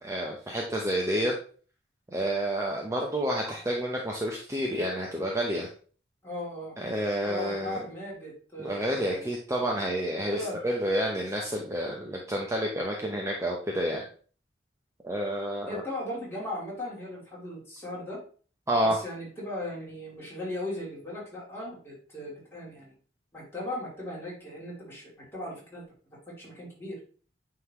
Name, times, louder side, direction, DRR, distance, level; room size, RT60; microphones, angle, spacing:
voice 1, 0.0-1.3 2.1-5.7 6.8-7.8 8.6-14.1 15.0-15.8 18.7-19.0, equal, 15° right, -1 dB, 0.8 m, -29 dB
voice 2, 6.2-6.7 7.2-9.3 10.3-10.6 15.7-18.2 18.8-22.9 23.3-25.8 26.4-27.0, left 1 dB, 15° left, -6 dB, 2.9 m, -37 dB
9.1 x 3.9 x 3.1 m, 0.41 s
head